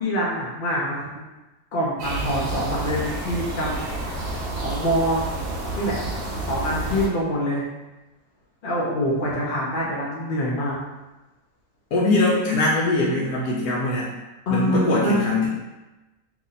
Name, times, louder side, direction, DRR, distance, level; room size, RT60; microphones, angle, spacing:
voice 1, 0.0-1.1 1.7-3.8 4.3-5.2 5.8-6.0 6.4-7.7 8.6-10.8 14.5-15.4, equal, 60° left, -5 dB, 0.5 m, -25 dB
sound 1, 2.0-7.1, right 2 dB, 60° right, 0.8 m, -29 dB
voice 2, 11.9-14.1 14.5-15.5, left 2 dB, 85° left, -5 dB, 1.1 m, -22 dB
2.9 x 2.6 x 3.9 m, 1.1 s
omnidirectional pair, 1.6 m